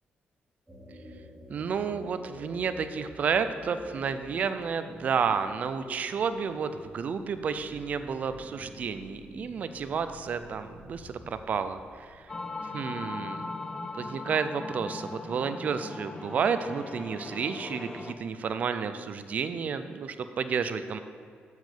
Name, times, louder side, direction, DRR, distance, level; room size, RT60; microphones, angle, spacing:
sound 1, 0.7-12.2, equal, 5° right, 1.2 m, -49 dB
voice 1, 1.5-12.3 12.7-13.4 13.9-21.0, right 6 dB, 45° right, 10 dB, 0.4 m, -31 dB
sound 2, 12.3-18.1, left 3 dB, 20° left, 0.4 m, -39 dB
7.4 x 6.2 x 6.7 m, 2.1 s
wide cardioid pair, 175°, 4 cm